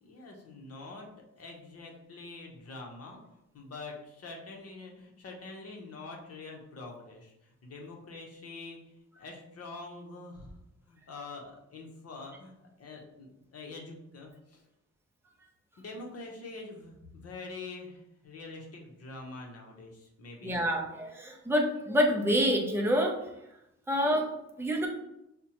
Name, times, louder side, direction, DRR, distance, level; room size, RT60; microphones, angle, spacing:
voice 1, 0.0-1.1 1.4-3.2 3.5-10.5 10.9-14.6 15.8-20.6, left 3 dB, 50° left, 0 dB, 0.8 m, -45 dB
voice 2, 20.4-23.2 23.9-24.3 24.6-24.9, equal, 10° right, 0 dB, 0.5 m, -27 dB
5.0 x 2.1 x 2.9 m, 0.85 s
wide cardioid pair, 140°, 30 cm